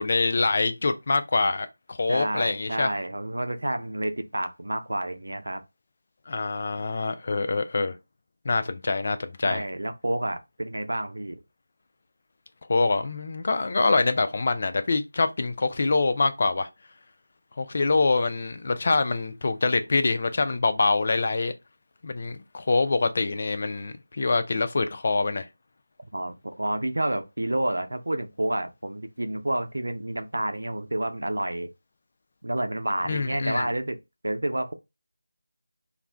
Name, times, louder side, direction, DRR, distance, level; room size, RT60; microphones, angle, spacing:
voice 1, 0.0-2.9 6.3-8.0 8.4-9.6 12.7-16.7 17.6-21.5 22.0-25.5 33.0-33.7, left 3 dB, 40° left, 0.3 m, -25 dB
voice 2, 2.1-5.6 9.4-11.4 26.1-31.7 32.4-34.0 34.2-34.7, right 1 dB, 80° right, 0.6 m, -29 dB
2.4 x 2.2 x 3.3 m
figure-of-eight pair, 170°, 0 cm